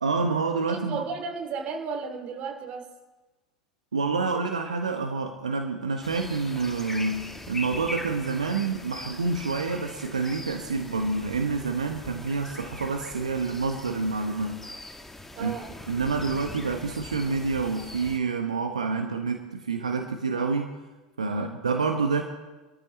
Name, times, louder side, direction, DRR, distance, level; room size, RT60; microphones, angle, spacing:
voice 1, 0.0-1.0 3.9-14.7 15.4-15.5 15.9-20.7 21.2-22.2, right 4 dB, 75° right, 4 dB, 1.3 m, -28 dB
voice 2, 0.7-2.9 15.3-15.7 21.3-21.6, right 5 dB, 40° right, 3 dB, 2.8 m, -34 dB
sound 1, 6.0-18.2, left 1 dB, 10° left, 1.5 m, -41 dB
25.5 x 13.5 x 3.3 m, 1.1 s
figure-of-eight pair, 85°, 4 cm